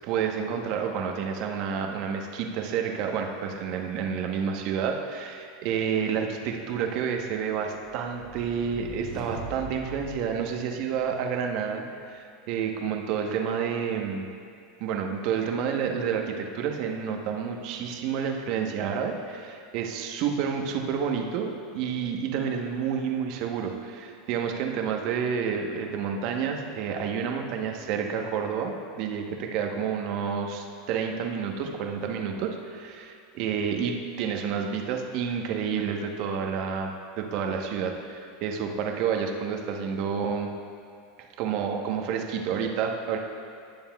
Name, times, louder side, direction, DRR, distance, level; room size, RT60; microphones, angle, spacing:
voice 1, 0.0-14.2 14.8-40.5 41.4-43.2, right 7 dB, 60° right, 3 dB, 1.0 m, -29 dB
sound 1, 7.8-11.2, right 2 dB, ahead, 1.5 m, -43 dB
19.5 x 7.1 x 2.3 m, 2.3 s
hypercardioid pair, 100°, 0 cm